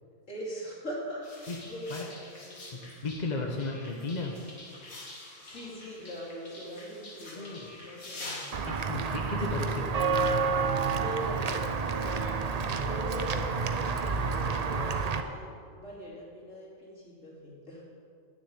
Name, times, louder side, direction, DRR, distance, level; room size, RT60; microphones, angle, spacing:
voice 1, 0.3-3.0 5.4-8.4 10.9-11.7 12.0-17.8, equal, 60° left, -5 dB, 3.3 m, -42 dB
sound 1, 1.2-8.5, left 2 dB, 75° left, 2.4 m, -46 dB
voice 2, 1.5-2.1 2.7-4.4 7.4-7.7 8.7-9.9, left 3 dB, 35° left, 1 dB, 1.0 m, -35 dB
Walk footsteps / Bell, 8.5-15.2, right 4 dB, 55° right, 0.4 m, -29 dB
9.8 x 6.9 x 8.8 m, 2.2 s
omnidirectional pair, 1.5 m